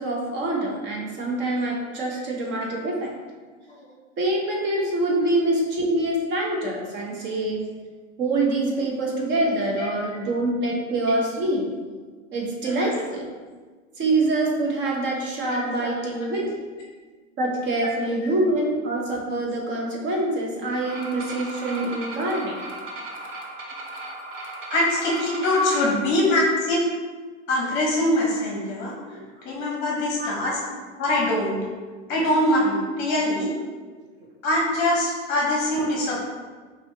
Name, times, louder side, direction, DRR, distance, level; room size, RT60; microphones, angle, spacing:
voice 1, 0.0-3.1 4.2-7.7 8.2-11.7 12.3-13.3 14.0-16.5 17.4-22.6 30.2-30.5, right 2 dB, 30° right, -1 dB, 0.9 m, -25 dB
sound 1, 20.8-26.0, right 2 dB, 75° right, 0.9 m, -36 dB
voice 2, 24.7-26.8 27.5-28.9 29.4-30.6 31.0-31.6 32.1-33.5 34.4-36.2, left 1 dB, 30° left, -3 dB, 0.9 m, -23 dB
5.3 x 2.5 x 2.7 m, 1.4 s
hypercardioid pair, 110°, 38 cm